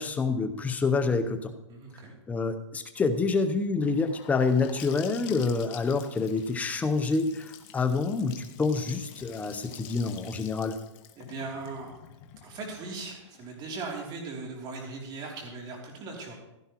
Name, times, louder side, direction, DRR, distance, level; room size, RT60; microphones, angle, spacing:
voice 1, 0.0-1.5 2.3-10.8, left 4 dB, 10° left, 8 dB, 0.7 m, -27 dB
voice 2, 1.7-2.1 11.1-12.0 12.4-16.3, right 3 dB, 25° right, 0 dB, 2.9 m, -39 dB
Gurgling / Sink (filling or washing) / Bathtub (filling or washing), 3.8-13.7, left 10 dB, 40° left, 1.2 m, -48 dB
15.5 x 12.0 x 3.0 m, 0.94 s
hypercardioid pair, 145°, 16 cm